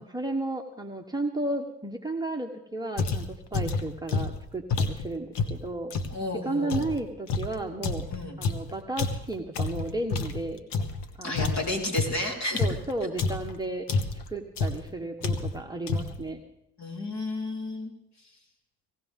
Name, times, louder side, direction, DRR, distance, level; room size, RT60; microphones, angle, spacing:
voice 1, 0.0-5.9 6.4-8.1 8.4-10.6 11.2-11.5 12.6-13.9 14.3-16.4, right 2 dB, 10° right, 1 dB, 1.2 m, -33 dB
sound 1, 3.0-6.2 6.7-11.1 11.3-13.6 13.9-14.3 14.6-14.9 15.2-15.6 15.9-16.3, left 4 dB, 70° left, 1.5 m, -29 dB
voice 2, 6.1-6.9 8.1-8.4 11.2-12.6 16.8-17.9, left 2 dB, 40° left, 0 dB, 4.2 m, -32 dB
18.5 x 17.0 x 3.7 m, 0.81 s
cardioid pair, 100°, 42 cm